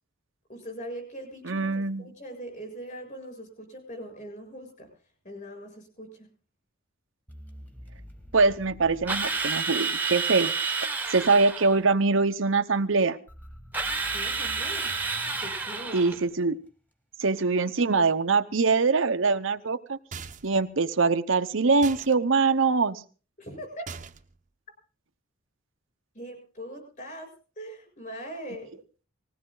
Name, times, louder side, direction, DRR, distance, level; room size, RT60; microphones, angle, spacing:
voice 1, 0.5-4.9 5.2-6.3 14.1-14.9 15.3-16.0 23.4-23.9 26.1-27.3 27.6-28.7, equal, 40° left, 4 dB, 6.8 m, -41 dB
voice 2, 1.4-2.1 8.3-10.5 10.8-13.2 15.9-16.6 17.2-20.0 20.4-23.0, right 4 dB, 75° right, 9 dB, 0.9 m, -23 dB
sound 1, 7.3-10.3 13.3-16.7, equal, 10° left, 1.6 m, -48 dB
Drill, 9.1-11.8 13.7-16.2, right 4 dB, 10° right, 1.2 m, -30 dB
sound 2, 20.1-20.6 21.8-22.1 23.9-24.4, right 5 dB, 35° right, 0.9 m, -40 dB
20.0 x 16.5 x 3.9 m, 0.38 s
head